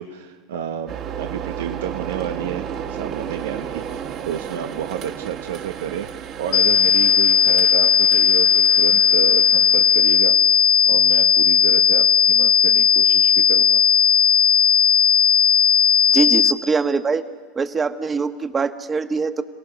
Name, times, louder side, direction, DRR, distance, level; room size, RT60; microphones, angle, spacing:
voice 1, 0.0-6.1 6.4-13.8, right 9 dB, 85° right, 5 dB, 1.0 m, -30 dB
sound 1, 0.9-10.3, right 8 dB, 55° right, 2.3 m, -33 dB
sound 2, 6.5-16.5, left 8 dB, 70° left, 1.1 m, -16 dB
voice 2, 16.1-17.2 17.5-19.4, right 4 dB, 25° right, 8 dB, 1.4 m, -22 dB
29.5 x 18.0 x 6.5 m, 1.5 s
hypercardioid pair, 100°, 0 cm